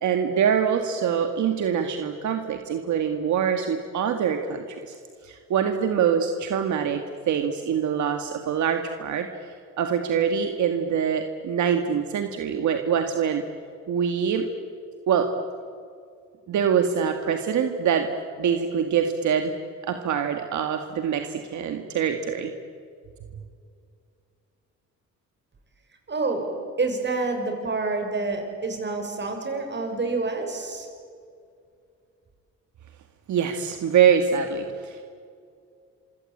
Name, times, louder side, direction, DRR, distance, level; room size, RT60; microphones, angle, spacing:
voice 1, 0.0-5.0 5.2-9.3 9.8-13.4 13.9-14.5 15.1-15.3 16.5-18.1 18.4-19.5 19.8-22.5 33.3-35.0, right 7 dB, 70° right, 6 dB, 2.0 m, -24 dB
voice 2, 26.1-26.5 26.8-30.9, right 3 dB, 35° right, 4 dB, 7.1 m, -28 dB
27.0 x 24.5 x 8.7 m, 2.3 s
cardioid pair, 90°, 30 cm